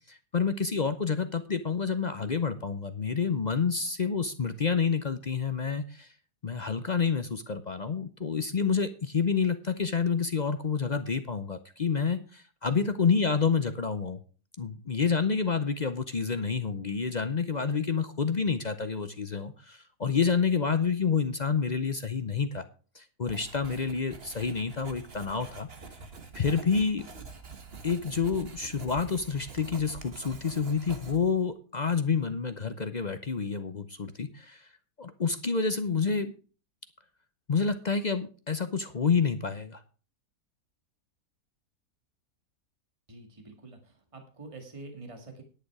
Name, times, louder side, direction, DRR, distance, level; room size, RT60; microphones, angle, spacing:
voice 1, 0.1-6.1 6.4-14.2 14.6-22.7 22.9-25.7 26.3-27.1 27.8-34.7 35.0-36.3 37.5-39.8, left 5 dB, 45° left, 10 dB, 0.5 m, -28 dB
Writing, 23.3-31.5, right 4 dB, 40° right, 1.5 m, -46 dB
voice 2, 43.1-45.4, right 3 dB, 20° right, 5 dB, 2.0 m, -46 dB
10.5 x 8.9 x 4.8 m, 0.37 s
omnidirectional pair, 1.7 m